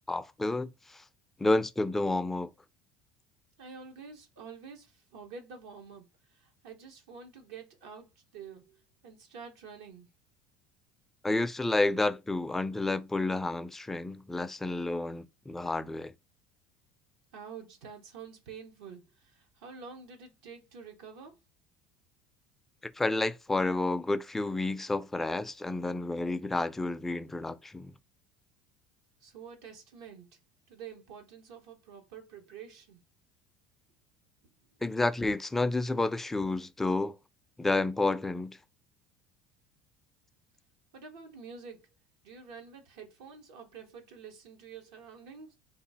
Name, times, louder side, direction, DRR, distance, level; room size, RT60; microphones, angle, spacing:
voice 1, 0.1-1.0 1.4-2.5 11.2-16.1 23.0-27.9 34.8-37.2 37.6-38.6, left 2 dB, 10° left, 0.3 m, -30 dB
voice 2, 3.6-8.8 9.0-10.1 17.3-21.4 29.2-30.3 30.7-33.0 40.9-41.9 42.2-45.6, right 6 dB, 80° right, 0.9 m, -48 dB
3.0 x 2.3 x 3.9 m
supercardioid pair, 105°, 3 cm